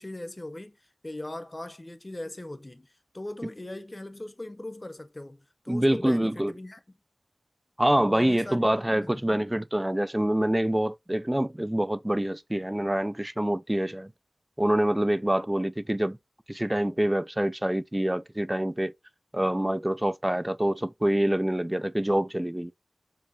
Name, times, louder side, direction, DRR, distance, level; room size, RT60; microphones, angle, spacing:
voice 1, 0.0-7.0 8.1-8.7 9.0-9.3, left 1 dB, 25° left, 0.8 m, -40 dB
voice 2, 5.7-6.5 7.8-14.1 14.6-16.2 16.5-18.9 19.3-22.7, right 1 dB, 15° right, 0.3 m, -26 dB
6.8 x 2.8 x 2.7 m
wide cardioid pair, 70°, 0 cm